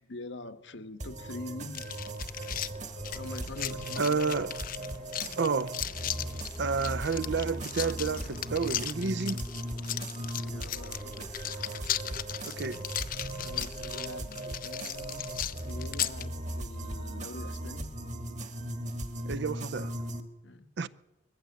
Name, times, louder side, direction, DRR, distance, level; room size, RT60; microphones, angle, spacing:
voice 1, 0.0-1.9 3.1-4.4 6.3-6.4 10.4-11.9 12.4-12.6 13.4-15.2 15.5-17.9 20.4-20.9, left 2 dB, 70° left, 1.3 m, -44 dB
sound 1, 1.0-20.2, right 1 dB, 40° right, 1.5 m, -38 dB
sound 2, 1.7-16.3, left 11 dB, 50° left, 0.7 m, -37 dB
sound 3, 2.2-18.8, equal, 5° left, 1.0 m, -52 dB
voice 2, 4.0-4.5 5.4-5.8 6.6-9.4 12.4-12.8 19.3-19.9 20.8-20.9, right 4 dB, 65° right, 0.6 m, -30 dB
21.5 x 14.5 x 8.3 m
head